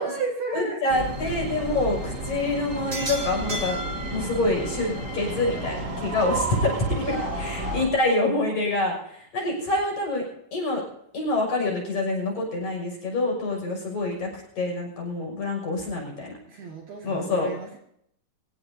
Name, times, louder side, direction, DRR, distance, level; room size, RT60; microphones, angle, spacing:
voice 1, 0.0-0.8 7.0-8.0 16.5-17.8, right 2 dB, 55° right, 0 dB, 3.4 m, -33 dB
voice 2, 0.5-10.3 10.5-10.8 11.1-16.3 17.0-17.5, left 2 dB, 35° left, 0 dB, 7.5 m, -26 dB
sound 1, 0.9-7.9, right 1 dB, 30° right, 1.5 m, -31 dB
26.5 x 16.0 x 2.8 m, 0.72 s
omnidirectional pair, 5.9 m